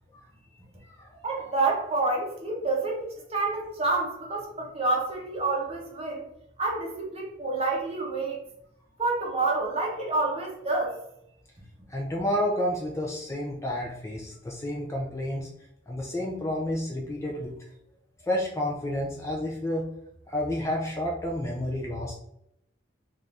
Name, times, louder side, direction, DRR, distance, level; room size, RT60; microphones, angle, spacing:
voice 1, 1.2-6.2 6.6-8.4 9.0-11.0, right 3 dB, 30° right, -1 dB, 0.7 m, -28 dB
voice 2, 11.9-15.5 15.9-17.5 18.2-19.9 20.3-22.1, left 1 dB, 15° left, -2 dB, 0.3 m, -30 dB
2.6 x 2.4 x 3.2 m, 0.78 s
head